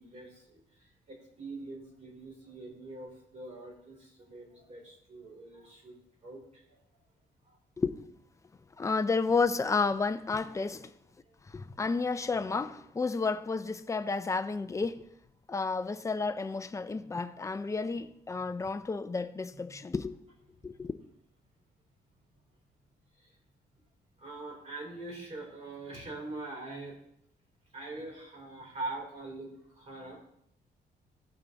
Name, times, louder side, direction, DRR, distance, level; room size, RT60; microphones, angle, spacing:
voice 1, 0.0-6.6 7.5-7.6 11.2-11.3 19.7-19.8 23.2-23.3 24.2-26.9 27.7-30.2, right 2 dB, 40° right, 4.2 m, -43 dB
voice 2, 8.8-10.9 11.5-15.1 15.5-20.2 20.6-20.9, left 4 dB, 15° left, 0.5 m, -31 dB
15.5 x 5.8 x 4.0 m
wide cardioid pair, 155°, 18 cm